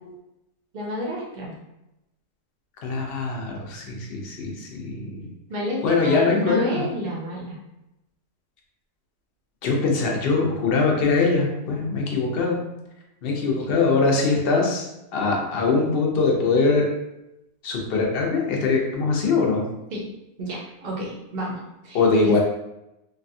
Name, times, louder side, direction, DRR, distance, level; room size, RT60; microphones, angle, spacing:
voice 1, 0.7-1.5 5.5-7.6 19.9-20.1 20.4-22.4, equal, 55° right, -3 dB, 0.7 m, -30 dB
voice 2, 2.8-5.3 5.8-6.8 9.6-12.6 13.2-16.9 17.6-19.6 21.9-22.4, left 4 dB, 60° left, -1 dB, 0.6 m, -22 dB
3.2 x 2.2 x 2.6 m, 0.91 s
omnidirectional pair, 1.6 m